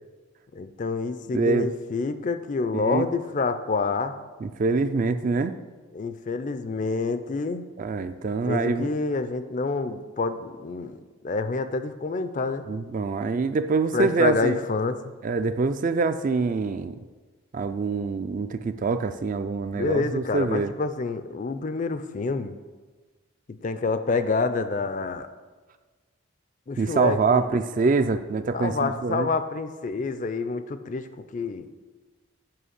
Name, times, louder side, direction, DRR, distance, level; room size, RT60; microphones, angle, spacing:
voice 1, 0.5-4.1 5.9-7.7 8.5-12.6 13.9-15.0 19.7-22.5 23.5-25.3 26.7-27.4 28.5-31.1 31.3-31.7, left 3 dB, 35° left, 11 dB, 0.4 m, -27 dB
voice 2, 1.3-1.7 2.7-3.1 4.4-5.5 7.8-8.9 12.7-14.6 15.2-17.0 17.5-20.7 26.8-29.3, right 4 dB, 35° right, 10 dB, 0.3 m, -25 dB
7.7 x 5.1 x 6.5 m, 1.3 s
head